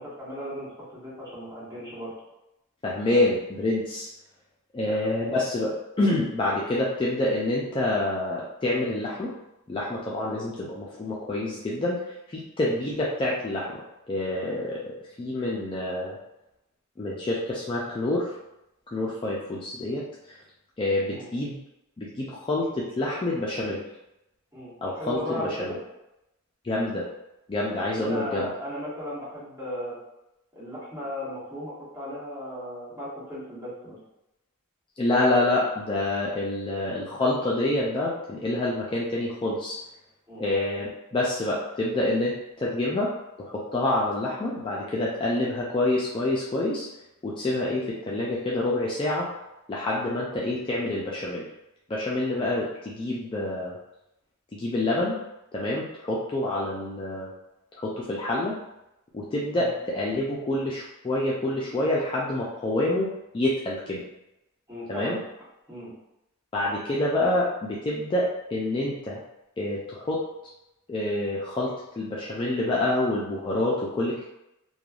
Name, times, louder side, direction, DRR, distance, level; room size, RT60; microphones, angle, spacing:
voice 1, 0.0-2.1 4.8-5.2 21.1-21.3 24.5-25.8 27.8-30.0 30.5-34.0 40.3-40.5 52.3-52.5 59.5-59.7 64.7-65.2 65.7-65.9, equal, 15° right, -11 dB, 1.4 m, -36 dB
voice 2, 2.8-4.1 4.7-5.7 6.0-9.3 9.7-12.0 12.3-13.8 14.1-16.2 17.0-18.3 18.9-20.0 20.8-21.6 22.0-23.8 24.8-25.8 26.6-27.0 27.5-28.5 35.0-39.8 40.4-43.1 43.4-46.9 47.2-49.3 49.7-51.4 51.9-53.8 54.5-55.2 55.5-57.3 57.8-58.6 59.1-63.1 63.3-64.0 64.9-65.2 66.5-69.2 69.6-70.2 70.9-74.2, left 2 dB, 25° left, -5 dB, 0.3 m, -27 dB
3.2 x 2.2 x 2.3 m, 0.90 s
head